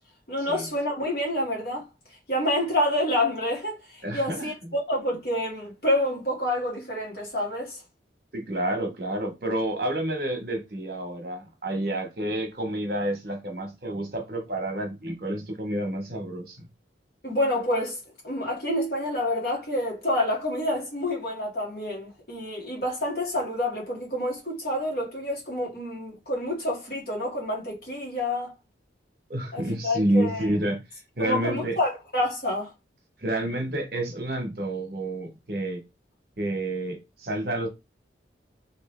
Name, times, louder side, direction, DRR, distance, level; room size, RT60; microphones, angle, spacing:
voice 1, 0.3-1.9 2.3-7.8 17.2-28.5 29.5-30.5 31.2-32.7, left 1 dB, 55° left, 1.8 m, -28 dB
voice 2, 4.0-4.5 8.3-16.6 29.3-30.8 31.2-31.8 33.2-35.8 36.4-37.7, right 1 dB, 55° right, 1.2 m, -29 dB
3.5 x 3.3 x 3.2 m
head